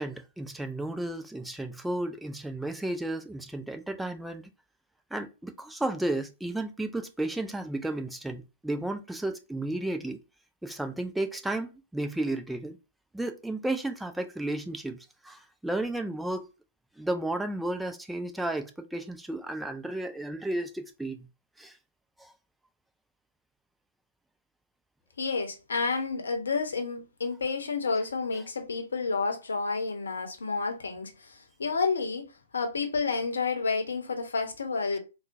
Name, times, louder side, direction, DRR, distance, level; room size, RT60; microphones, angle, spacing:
voice 1, 0.0-4.5 5.1-10.2 10.6-12.8 13.1-15.0 15.2-16.5 17.0-21.3 21.6-21.8 22.2-22.3, right 1 dB, 5° right, 0.3 m, -33 dB
voice 2, 25.2-32.3 32.5-35.0, left 4 dB, 65° left, 0.7 m, -30 dB
3.6 x 2.1 x 2.5 m
figure-of-eight pair, 115°, 0 cm